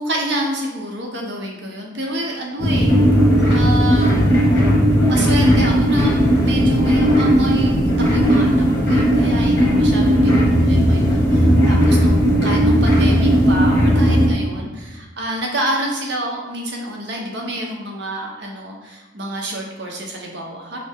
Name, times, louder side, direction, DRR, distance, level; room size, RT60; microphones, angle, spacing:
voice 1, 0.0-2.9 3.5-4.1 4.5-4.6 5.1-20.8, right 1 dB, 65° right, 0 dB, 0.8 m, -28 dB
sound 1, 2.6-14.3, equal, 60° left, 1.3 m, -15 dB
4.2 x 3.2 x 3.5 m, 1.2 s
head